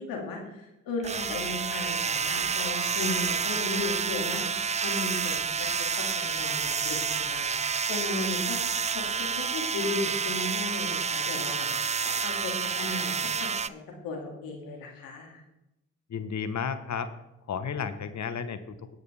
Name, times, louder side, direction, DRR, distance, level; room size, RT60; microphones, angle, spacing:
voice 1, 0.0-5.7 6.0-8.6 8.9-11.7 12.2-13.1 13.4-15.4, left 3 dB, 85° left, 0 dB, 2.4 m, -35 dB
sound 1, 1.0-13.7, right 6 dB, 20° right, 0.4 m, -29 dB
voice 2, 16.1-17.1 17.5-18.9, left 6 dB, 55° left, 10 dB, 1.2 m, -33 dB
18.5 x 6.6 x 3.4 m, 0.90 s
hypercardioid pair, 40°, 34 cm